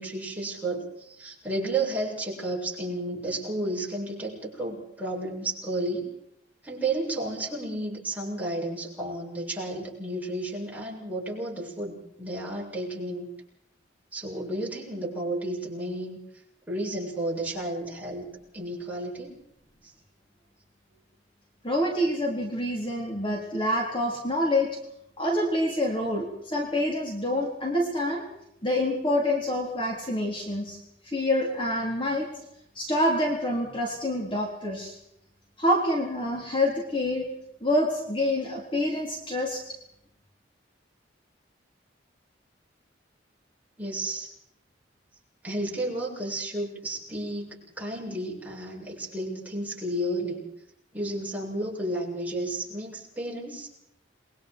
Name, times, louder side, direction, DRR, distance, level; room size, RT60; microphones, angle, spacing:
voice 1, 0.0-6.1 6.6-13.3 14.1-16.2 16.7-19.3 19.8-19.9 43.8-44.3 45.4-50.4 50.9-53.7, right 1 dB, 10° right, -3 dB, 7.5 m, -32 dB
voice 2, 21.6-24.8 25.2-28.2 28.6-30.8 31.0-32.3 32.8-35.0 35.6-37.3 37.6-39.8, left 1 dB, 30° left, -1 dB, 4.0 m, -27 dB
29.5 x 23.5 x 4.7 m, 0.77 s
head